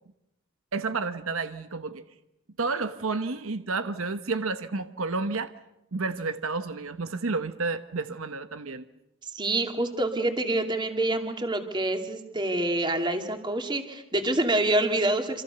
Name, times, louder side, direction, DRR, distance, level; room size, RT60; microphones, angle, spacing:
voice 1, 0.7-2.0 2.6-5.5 5.9-8.9, right 3 dB, 70° right, 10 dB, 1.0 m, -30 dB
voice 2, 9.3-15.4, right 2 dB, 20° right, 5 dB, 2.5 m, -26 dB
27.5 x 26.5 x 6.9 m, 0.87 s
head